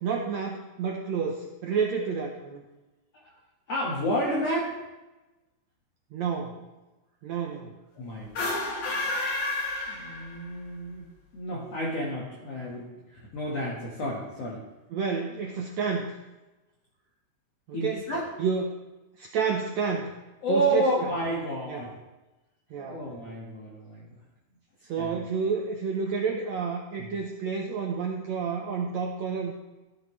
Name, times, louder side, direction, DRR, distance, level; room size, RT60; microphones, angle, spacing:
voice 1, 0.0-2.6 6.1-6.6 7.2-7.7 14.9-16.1 17.7-18.1 18.4-18.8 19.2-20.1 20.5-21.1 21.7-21.9 22.7-23.0 24.9-29.5, right 5 dB, 80° right, 1 dB, 1.6 m, -30 dB
voice 2, 3.7-4.8 8.0-8.5 9.9-11.0 11.3-14.6 17.7-18.3 20.4-21.9 22.7-24.2 25.0-25.1 27.0-27.1, right 1 dB, 50° left, -4 dB, 2.3 m, -30 dB
sound 1, 8.2-10.6, left 2 dB, 75° left, 4.2 m, -30 dB
14.0 x 12.0 x 3.3 m, 1.1 s
omnidirectional pair, 4.3 m